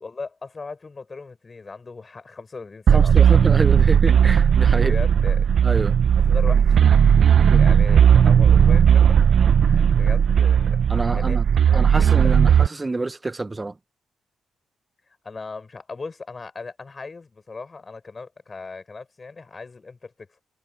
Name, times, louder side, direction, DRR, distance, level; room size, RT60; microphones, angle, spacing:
voice 1, 0.0-3.4 4.7-5.5 6.2-9.2 9.6-11.4 11.7-12.5 15.2-20.3, left 4 dB, 35° left, 6.6 m, -38 dB
voice 2, 2.9-5.0 5.6-6.0 7.5-7.6 10.9-11.4 11.7-13.7, right 2 dB, 20° right, 0.8 m, -27 dB
sound 1, 2.9-12.7, right 8 dB, 60° right, 0.7 m, -16 dB
cardioid pair, 70°, 0 cm